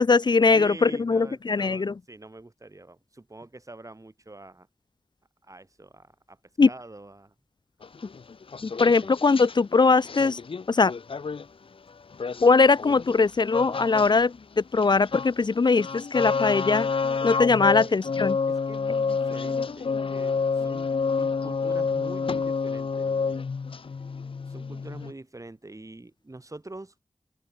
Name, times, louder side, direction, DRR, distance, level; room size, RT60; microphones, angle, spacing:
voice 1, 0.0-1.9 6.6-6.7 8.6-10.4 10.7-10.9 12.4-16.9 17.2-18.4, left 4 dB, 55° left, 0.6 m, -21 dB
voice 2, 0.5-4.7 5.4-6.4 6.7-7.3 8.9-9.1 17.7-18.0 18.5-23.5 24.5-26.9, right 2 dB, 35° right, 7.7 m, -44 dB
sound 1, 7.8-9.6 10.0-11.5 12.1-14.1 14.4-25.1, left 5 dB, 80° left, 1.3 m, -29 dB
open air
cardioid pair, 45°, 9 cm